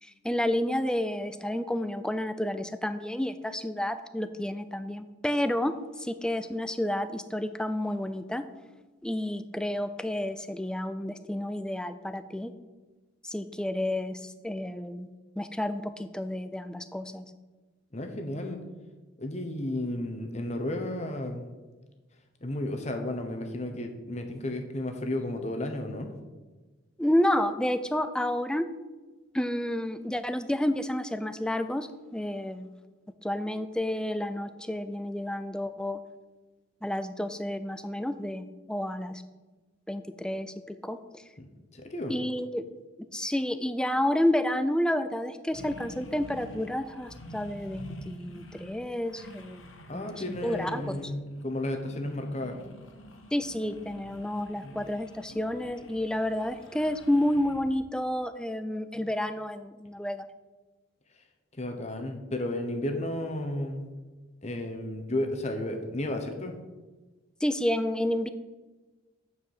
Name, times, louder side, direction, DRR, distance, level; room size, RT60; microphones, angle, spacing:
voice 1, 0.0-8.4 9.0-12.5 13.2-15.1 15.4-17.3 27.0-28.7 29.3-32.7 33.2-36.0 36.8-39.2 39.9-41.2 42.1-42.7 43.1-49.7 49.9-51.0 53.3-60.3 67.4-68.3, left 1 dB, 5° left, 10 dB, 0.4 m, -30 dB
voice 2, 17.9-18.6 19.2-21.5 22.4-26.1 41.4-41.5 41.7-42.1 49.9-52.6 54.6-54.8 61.6-63.9 64.4-66.5, left 1 dB, 35° left, 5 dB, 1.0 m, -33 dB
sound 1, 45.5-57.8, left 1 dB, 85° left, 1.3 m, -47 dB
8.8 x 4.8 x 7.3 m, 1.2 s
head